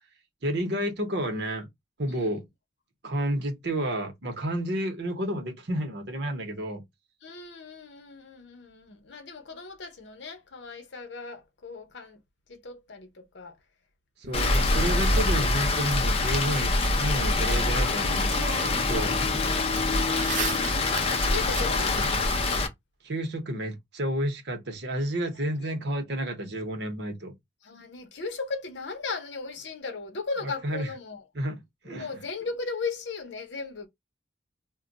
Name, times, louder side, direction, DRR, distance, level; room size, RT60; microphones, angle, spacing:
voice 1, 0.4-1.7 2.0-2.4 3.0-6.8 14.2-18.3 18.9-19.2 23.0-27.3 30.6-30.9 31.3-31.6 31.8-32.1, right 1 dB, 60° right, 0.9 m, -30 dB
voice 2, 2.1-2.4 7.2-12.2 12.5-13.6 14.2-14.6 18.8-20.9 21.3-22.3 25.6-25.7 27.6-31.2 31.9-33.9, left 4 dB, 65° left, 0.7 m, -37 dB
sound 1, 14.2-15.5 17.7-17.8 18.2-19.1 19.4-22.5, right 5 dB, 40° right, 0.4 m, -37 dB
Rain, 14.3-22.7, left 2 dB, 30° left, 0.5 m, -25 dB
2.2 x 2.2 x 3.8 m
head